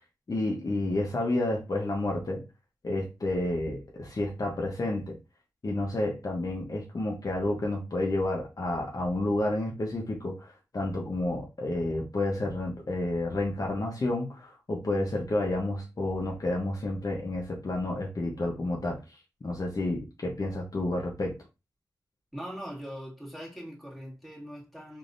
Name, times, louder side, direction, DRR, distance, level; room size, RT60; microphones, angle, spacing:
voice 1, 0.3-2.4 2.8-5.2 5.6-21.4, left 2 dB, 45° left, 0.9 m, -30 dB
voice 2, 22.3-25.0, equal, ahead, 2.0 m, -41 dB
3.5 x 3.0 x 2.6 m
cardioid pair, 60°, 8 cm